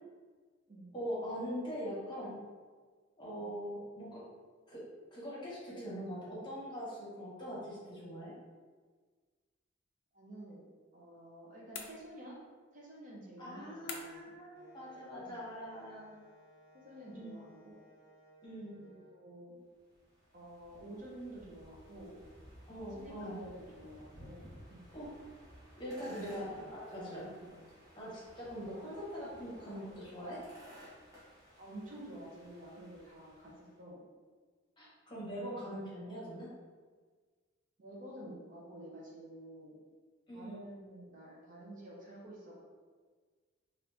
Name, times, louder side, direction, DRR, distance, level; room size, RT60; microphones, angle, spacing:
voice 1, 0.9-2.4 3.2-4.2 4.7-4.8 5.1-8.3 13.4-16.2 17.1-17.4 18.4-18.8 22.7-23.4 24.9-25.1 25.8-26.5 26.7-27.3 28.0-30.4 34.8-36.5 40.3-40.6, equal, 25° left, -7 dB, 0.9 m, -42 dB
voice 2, 10.1-10.6 10.9-12.4 12.7-14.3 15.2-15.5 16.7-17.8 18.8-19.6 20.3-22.2 22.9-24.9 26.0-27.1 27.4-27.7 28.8-28.9 31.6-34.0 37.8-39.7 40.3-42.6, right 1 dB, 45° right, -4 dB, 0.7 m, -50 dB
sound 1, 11.7-12.5 13.9-14.4, left 5 dB, 65° left, 0.4 m, -46 dB
Wind instrument woodwind instrument, 14.5-19.2, right 1 dB, 85° right, 1.2 m, -62 dB
sound 2, 19.7-33.8, equal, 20° right, 1.0 m, -57 dB
2.9 x 2.5 x 3.4 m, 1.5 s
head